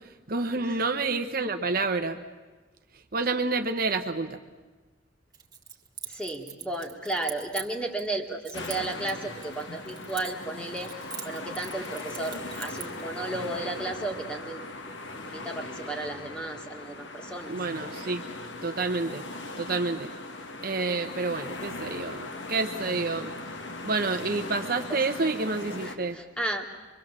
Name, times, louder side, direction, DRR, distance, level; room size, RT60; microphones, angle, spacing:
voice 1, 0.3-2.2 3.1-4.4 17.5-18.2 18.6-19.2 19.6-20.1 20.6-23.3 23.8-26.2, right 3 dB, 50° right, 6 dB, 1.0 m, -28 dB
Keys jangling, 5.3-8.1 8.4-10.5 10.8-13.0, right 8 dB, 20° right, 1.7 m, -42 dB
voice 2, 6.1-10.9 11.2-14.6 15.1-17.5 24.9-25.0 25.8-26.7, right 2 dB, 5° left, 2 dB, 2.0 m, -34 dB
sound 1, 8.5-26.0, left 2 dB, 65° left, 1.9 m, -39 dB
25.0 x 23.5 x 7.5 m, 1.3 s
head